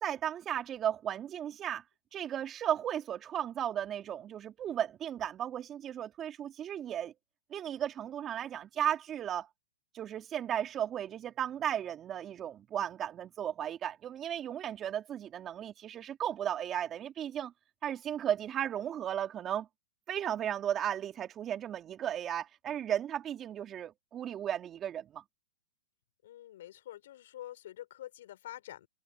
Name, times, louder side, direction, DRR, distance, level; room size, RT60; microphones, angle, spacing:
voice 1, 0.0-1.8 2.1-7.1 7.5-9.5 9.9-17.5 17.8-19.7 20.1-25.2, right 10 dB, 25° right, 2.8 m, -35 dB
voice 2, 26.2-28.9, left 13 dB, 65° left, 5.6 m, -47 dB
hypercardioid pair, 125°, 0 cm